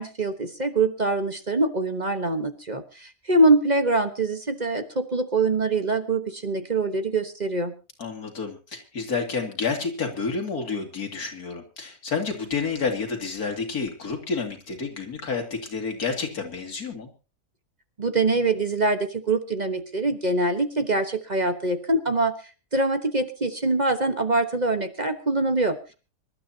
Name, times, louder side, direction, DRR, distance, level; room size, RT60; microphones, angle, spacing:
voice 1, 0.0-7.7 18.0-22.3 22.7-25.8, right 2 dB, 30° right, 8 dB, 1.2 m, -24 dB
voice 2, 8.0-17.1, left 5 dB, 90° left, 4 dB, 3.1 m, -29 dB
25.5 x 12.5 x 2.8 m, 0.33 s
omnidirectional pair, 1.5 m